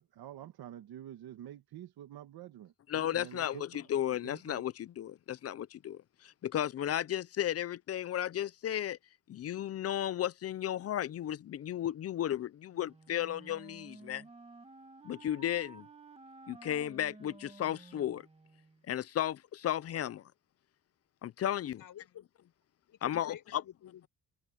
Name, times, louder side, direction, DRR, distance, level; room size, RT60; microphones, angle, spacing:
voice 1, 0.0-3.7 4.2-4.6, right 11 dB, 70° right, 1.8 m, -48 dB
voice 2, 2.9-9.0 9.3-14.2 15.0-15.9 16.5-18.2 18.9-20.2 21.2-21.8 23.0-23.6, left 11 dB, 40° left, 0.5 m, -34 dB
Wind instrument woodwind instrument, 12.7-18.8, right 3 dB, 15° right, 2.1 m, -53 dB
voice 3, 21.8-22.3 22.9-24.1, left 10 dB, 60° left, 7.2 m, -50 dB
cardioid pair, 165°, 38 cm